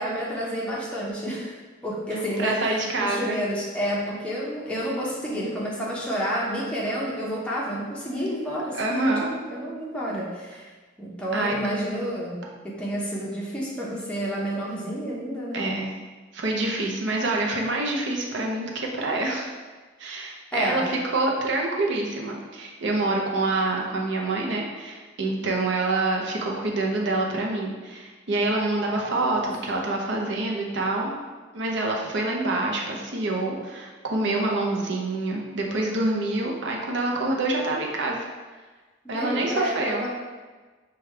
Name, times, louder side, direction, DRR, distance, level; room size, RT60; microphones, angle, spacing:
voice 1, 0.0-1.5 1.8-2.6 3.0-10.7 11.0-12.4 12.6-15.7 20.5-20.9 28.9-29.1 34.4-34.8 39.0-40.1, equal, 5° left, -6 dB, 0.7 m, -30 dB
voice 2, 2.1-3.4 8.7-9.3 11.3-11.6 15.5-15.9 16.3-19.5 20.0-31.1 31.5-38.2 39.1-40.1, right 2 dB, 60° right, 0 dB, 0.6 m, -26 dB
5.0 x 2.3 x 3.3 m, 1.3 s
head